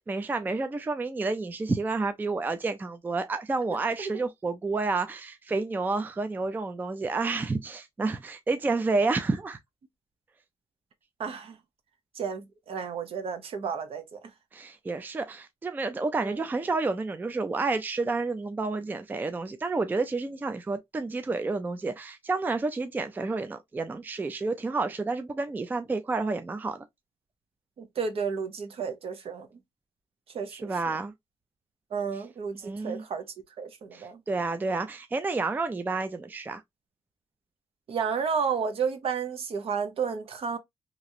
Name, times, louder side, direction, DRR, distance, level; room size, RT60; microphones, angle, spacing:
voice 1, 0.0-9.6 14.5-26.8 30.5-31.1 32.6-33.0 33.9-36.6, right 3 dB, 15° right, 0.3 m, -30 dB
voice 2, 11.2-11.6 12.2-14.2 16.2-16.4 27.8-29.5 30.3-31.0 31.9-33.3 33.6-34.2 37.9-40.6, right 6 dB, 65° right, 0.8 m, -32 dB
3.0 x 2.5 x 2.6 m
wide cardioid pair, 135°, 11 cm